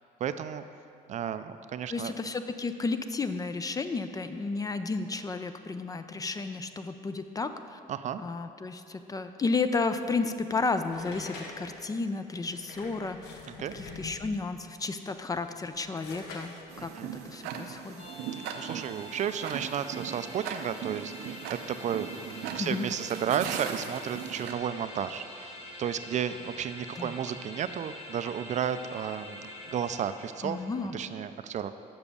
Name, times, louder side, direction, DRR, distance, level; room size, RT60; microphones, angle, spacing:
voice 1, 0.2-0.6 1.1-2.1 7.9-8.2 13.5-13.7 16.8-17.1 18.3-30.6 30.9-31.7, right 8 dB, 45° right, 11 dB, 0.4 m, -33 dB
voice 2, 1.9-7.8 8.2-13.4 13.7-18.0 22.6-22.9 26.9-27.2 30.4-31.0, left 3 dB, 20° left, 9 dB, 0.4 m, -32 dB
sound 1, 10.9-14.5 15.2-18.2, left 3 dB, 80° left, 1.1 m, -46 dB
Tick-tock, 16.7-24.5, right 8 dB, 90° right, 0.6 m, -39 dB
sound 2, 18.0-31.1, left 1 dB, 35° left, 1.4 m, -46 dB
7.1 x 5.9 x 6.8 m, 2.6 s
cardioid pair, 110°, 17 cm